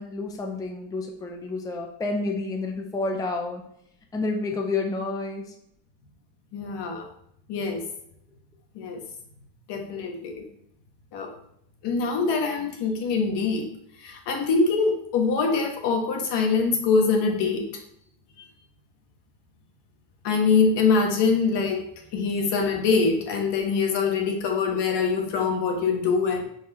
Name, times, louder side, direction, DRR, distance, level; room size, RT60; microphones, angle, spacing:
voice 1, 0.0-3.6 4.1-5.4, left 3 dB, 10° left, 2 dB, 0.6 m, -29 dB
voice 2, 6.5-7.1 7.5-7.8 8.7-9.0 9.7-10.4 11.1-11.3 11.8-13.7 14.0-17.6 20.2-21.8 22.1-26.4, left 4 dB, 60° left, 2 dB, 1.5 m, -24 dB
4.7 x 4.6 x 4.3 m, 0.72 s
cardioid pair, 135°, 46 cm